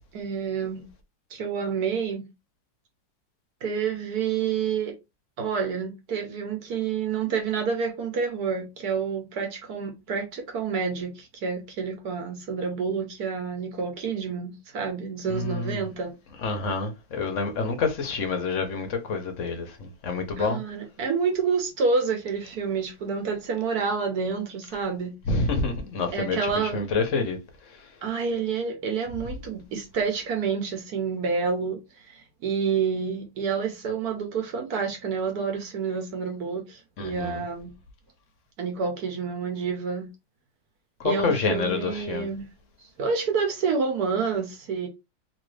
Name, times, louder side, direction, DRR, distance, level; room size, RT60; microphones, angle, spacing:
voice 1, 0.1-0.9 1.3-2.2 3.6-4.9 5.4-16.1 20.4-25.1 26.1-26.8 28.0-37.7 38.6-40.1 41.0-42.5 43.0-44.9, right 5 dB, 60° right, 1.3 m, -28 dB
voice 2, 15.3-15.8 16.4-20.6 25.3-27.4 37.0-37.4 41.0-42.3, left 4 dB, 55° left, 0.9 m, -27 dB
3.2 x 2.8 x 3.2 m
omnidirectional pair, 2.0 m